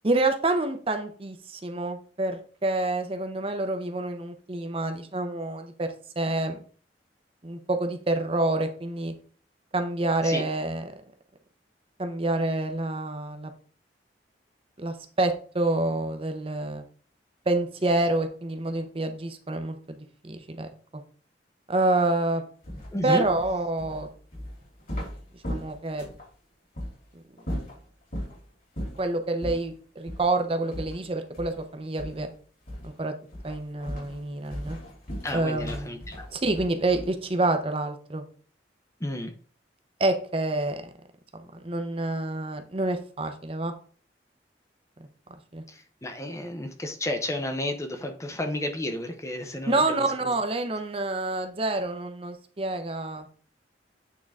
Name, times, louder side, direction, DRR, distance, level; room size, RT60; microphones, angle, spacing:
voice 1, 0.0-5.9 6.2-6.6 7.4-9.1 9.7-11.0 12.0-13.5 14.8-16.8 17.5-21.0 21.7-22.4 23.0-24.1 25.5-26.0 27.1-27.2 29.0-32.3 32.8-33.1 33.4-34.8 35.3-35.9 36.3-38.2 40.0-40.8 41.3-43.7 45.0-45.1 45.5-45.6 49.7-53.3, right 2 dB, 30° right, 7 dB, 0.7 m, -27 dB
sound 1, 22.6-26.3 26.7-26.9 27.4-28.4 28.7-29.1 29.4-29.6 30.0-30.3 30.7-31.7 32.0-32.3 32.7-33.0 33.3-37.2, equal, 50° left, 3.2 m, -37 dB
voice 2, 22.9-23.3 35.2-36.3 39.0-39.4 45.7-50.3, left 1 dB, 15° left, 6 dB, 0.7 m, -32 dB
8.5 x 3.8 x 3.6 m, 0.42 s
head